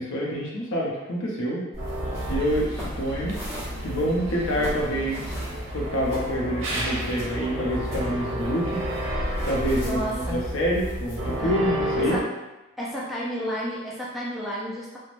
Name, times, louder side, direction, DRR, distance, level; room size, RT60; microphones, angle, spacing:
voice 1, 0.0-1.7 2.3-3.4 3.8-5.2 5.7-8.8 9.1-12.2, equal, 75° left, -3 dB, 0.7 m, -27 dB
sound 1, 1.7-11.5, equal, 20° left, 1.0 m, -39 dB
sound 2, 1.8-12.2, right 1 dB, 65° right, 0.6 m, -31 dB
voice 2, 9.8-10.4 11.4-11.6 12.0-12.3 12.8-15.0, equal, ahead, -6 dB, 0.3 m, -31 dB
3.2 x 2.1 x 2.5 m, 1.0 s
head